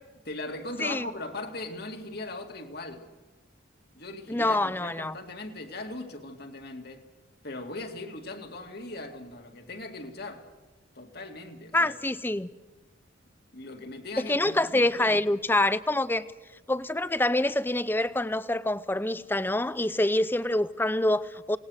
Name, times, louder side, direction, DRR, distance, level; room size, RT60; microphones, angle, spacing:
voice 1, 0.3-3.1 3.9-7.1 7.4-10.5 11.0-11.9 13.5-15.2, left 2 dB, 55° left, 2.3 m, -39 dB
voice 2, 4.3-5.2 11.7-12.5 14.2-16.3 16.7-21.6, left 1 dB, 10° left, 0.6 m, -26 dB
28.0 x 19.0 x 6.5 m
head